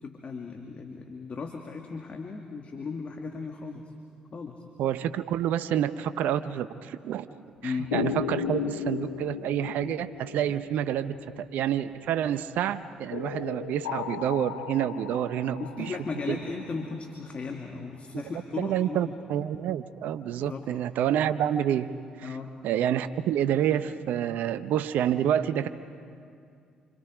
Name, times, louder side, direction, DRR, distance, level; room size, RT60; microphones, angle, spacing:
voice 1, 0.0-3.8 4.3-4.6 7.6-7.9 15.6-19.0 20.4-20.7 22.2-22.5, left 4 dB, 45° left, 3 dB, 2.0 m, -36 dB
voice 2, 4.8-7.3 7.6-16.0 16.3-16.4 18.1-18.2 18.6-21.9 22.2-22.4 22.6-25.7, right 10 dB, 70° right, 12 dB, 0.7 m, -28 dB
sound 1, 7.9-12.2 13.1-16.9, left 8 dB, 85° left, 0.9 m, -35 dB
28.0 x 26.0 x 5.0 m, 2.3 s
hypercardioid pair, 50°, 3 cm